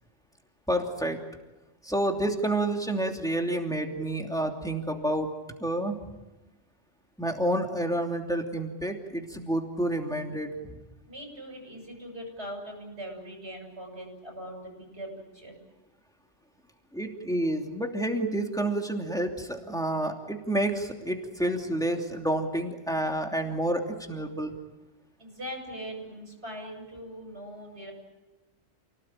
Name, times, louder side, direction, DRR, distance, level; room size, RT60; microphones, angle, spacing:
voice 1, 0.7-1.2 1.8-5.3 5.6-6.0 7.2-10.5 16.9-24.5, right 1 dB, 5° left, 2 dB, 2.9 m, -29 dB
voice 2, 11.1-15.6 25.2-27.9, equal, 65° right, 0 dB, 7.3 m, -41 dB
29.5 x 18.0 x 8.9 m, 1.1 s
omnidirectional pair, 1.2 m